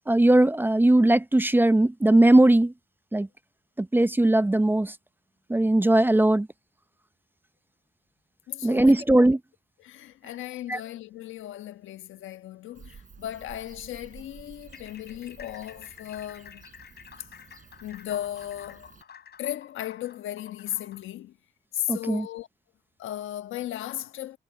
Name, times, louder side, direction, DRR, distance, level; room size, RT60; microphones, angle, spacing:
voice 1, 0.1-2.7 3.1-3.3 3.8-4.9 5.5-6.5 8.6-9.4 10.7-10.8 21.9-22.3, right 1 dB, 10° right, 0.7 m, -19 dB
voice 2, 8.5-9.0 9.8-16.6 17.8-18.9 19.4-21.4 21.7-22.5 23.0-24.4, left 12 dB, 80° left, 1.3 m, -36 dB
Bird / Cricket, 12.7-19.0, right 6 dB, 40° right, 6.0 m, -51 dB
sound 1, 14.6-21.1, left 8 dB, 55° left, 6.3 m, -50 dB
cardioid pair, 90°, 20 cm